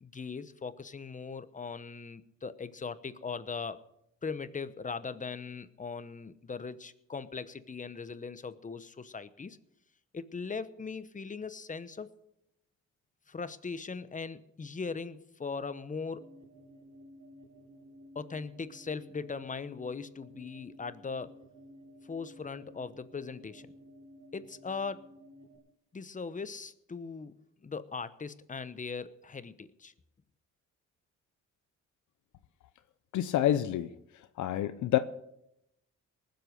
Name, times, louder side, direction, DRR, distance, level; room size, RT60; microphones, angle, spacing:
voice 1, 0.0-3.8 4.2-9.6 10.1-12.1 13.3-16.3 18.1-21.4 22.1-23.7 24.3-25.0 25.9-27.3 27.6-29.9, left 5 dB, 25° left, 14 dB, 0.9 m, -39 dB
sound 1, 16.1-25.6, equal, 60° right, 3.3 m, -54 dB
voice 2, 33.1-33.9 34.4-35.0, left 12 dB, 75° left, 11 dB, 0.7 m, -27 dB
19.5 x 7.9 x 6.6 m, 0.82 s
cardioid pair, 90°, 30 cm